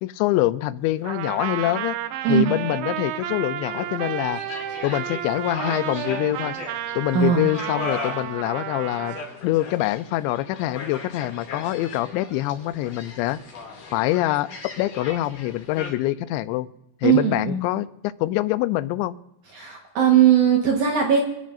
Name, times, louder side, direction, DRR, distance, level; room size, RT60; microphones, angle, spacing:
voice 1, 0.0-2.0 2.3-4.4 4.8-6.6 7.0-9.2 9.4-13.4 13.9-16.7 17.0-19.2, left 16 dB, 90° left, 15 dB, 2.9 m, -25 dB
Trumpet, 1.0-9.2, right 11 dB, 85° right, 2.1 m, -32 dB
voice 2, 2.2-2.6 7.1-7.5 17.0-17.6 19.5-21.2, right 9 dB, 65° right, 1 dB, 2.0 m, -19 dB
sound 1, 3.7-15.9, left 3 dB, 50° left, 3.6 m, -38 dB
29.0 x 10.5 x 2.5 m, 0.86 s
omnidirectional pair, 5.1 m